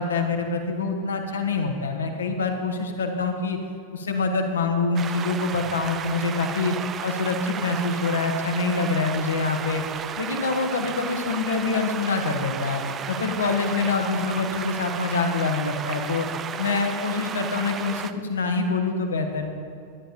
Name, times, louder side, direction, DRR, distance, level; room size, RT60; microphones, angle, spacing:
voice 1, 0.0-3.6 3.9-6.7 7.0-9.8 10.2-16.3 16.6-19.5, left 4 dB, 70° left, 4 dB, 1.5 m, -25 dB
sound 1, 5.0-18.1, right 8 dB, 25° right, 0.5 m, -33 dB
13.0 x 10.5 x 5.1 m, 2.4 s
figure-of-eight pair, 90°, 0 cm